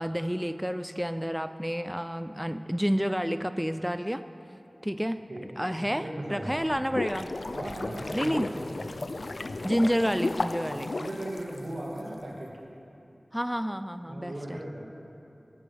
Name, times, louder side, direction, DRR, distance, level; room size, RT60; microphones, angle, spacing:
voice 1, 0.0-4.2 4.8-7.3 8.1-8.5 9.6-11.0 13.3-14.6, equal, 5° right, 10 dB, 0.4 m, -29 dB
voice 2, 5.9-6.5 7.5-8.8 10.9-12.5 14.1-14.8, right 1 dB, 85° right, -4 dB, 2.5 m, -37 dB
sound 1, 6.6-12.0, left 2 dB, 85° left, 0.5 m, -34 dB
21.0 x 12.0 x 3.4 m, 2.8 s
wide cardioid pair, 60°, 0 cm